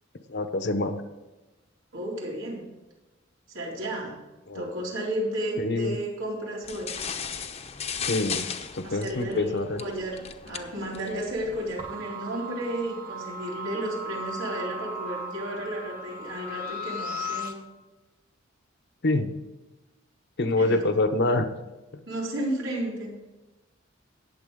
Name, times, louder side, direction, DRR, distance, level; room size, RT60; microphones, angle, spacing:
voice 1, 0.3-1.0 4.5-4.6 5.6-6.0 8.1-8.5 8.7-9.8 19.0-19.3 20.4-21.5, left 2 dB, 60° left, 9 dB, 0.9 m, -25 dB
voice 2, 1.9-2.7 3.5-4.2 4.5-6.9 8.8-17.6 20.5-20.8 22.1-23.1, right 1 dB, 85° right, -3 dB, 3.9 m, -33 dB
sound 1, 6.6-11.9, left 6 dB, 35° left, 0.8 m, -36 dB
sound 2, 11.8-17.5, equal, 45° right, 1.5 m, -36 dB
19.0 x 7.3 x 3.7 m, 1.1 s
head